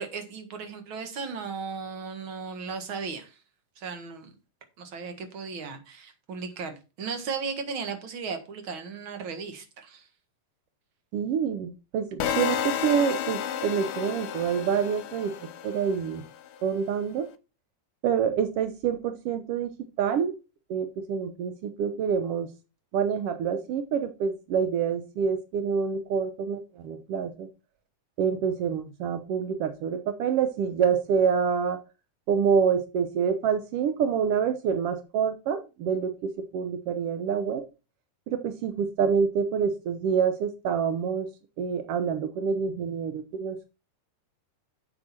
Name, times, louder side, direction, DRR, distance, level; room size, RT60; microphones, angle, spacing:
voice 1, 0.0-3.4 3.8-4.3 4.8-10.1, right 5 dB, 50° right, 2.0 m, -36 dB
voice 2, 11.1-15.3 15.6-16.2 16.6-17.3 18.0-19.7 20.0-20.3 20.7-22.5 22.9-27.5 28.2-31.8 32.3-37.6 38.3-41.3 41.6-43.7, right 7 dB, 75° right, 1.3 m, -27 dB
sound 1, 12.2-16.3, left 9 dB, 80° left, 2.2 m, -31 dB
8.3 x 7.8 x 4.3 m
omnidirectional pair, 3.7 m